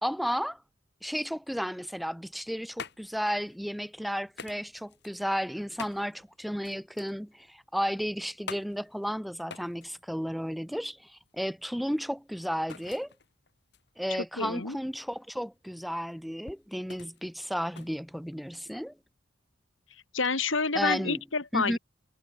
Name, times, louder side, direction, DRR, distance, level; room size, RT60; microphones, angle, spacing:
voice 1, 0.0-0.6 1.0-13.1 14.0-18.9 20.7-21.2 21.5-21.8, equal, ahead, 1.1 m, -33 dB
sound 1, 2.3-18.8, left 5 dB, 60° left, 5.5 m, -49 dB
voice 2, 14.4-14.8 20.1-21.8, left 4 dB, 90° left, 2.9 m, -28 dB
head